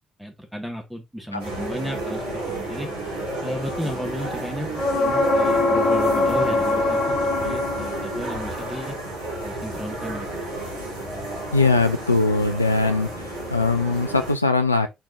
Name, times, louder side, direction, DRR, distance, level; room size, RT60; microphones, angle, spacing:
voice 1, 0.2-2.2 2.6-2.9 3.4-9.0 9.4-10.5, equal, 5° right, 2.0 m, -34 dB
sound 1, 1.4-14.3, right 1 dB, 75° right, 2.5 m, -32 dB
sound 2, 4.8-8.5 12.2-12.3, left 2 dB, 55° left, 1.4 m, -22 dB
voice 2, 11.5-13.1 13.5-14.9, left 3 dB, 90° left, 0.3 m, -20 dB
4.5 x 4.2 x 2.7 m
figure-of-eight pair, 45°, 0 cm